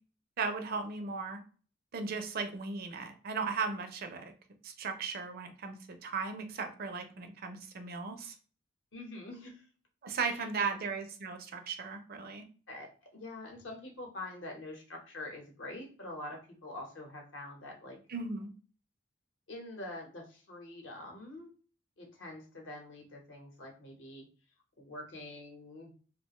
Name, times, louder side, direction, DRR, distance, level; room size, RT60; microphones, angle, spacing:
voice 1, 0.4-1.4 1.9-4.3 4.6-5.8 6.0-8.3 10.0-12.4 18.1-18.5, right 5 dB, 50° right, 6 dB, 0.4 m, -36 dB
voice 2, 8.9-9.7 10.2-10.7 12.7-18.0 19.5-21.5 22.0-24.3 24.8-25.9, left 2 dB, 65° left, 1 dB, 0.8 m, -45 dB
2.4 x 2.1 x 2.9 m, 0.38 s
head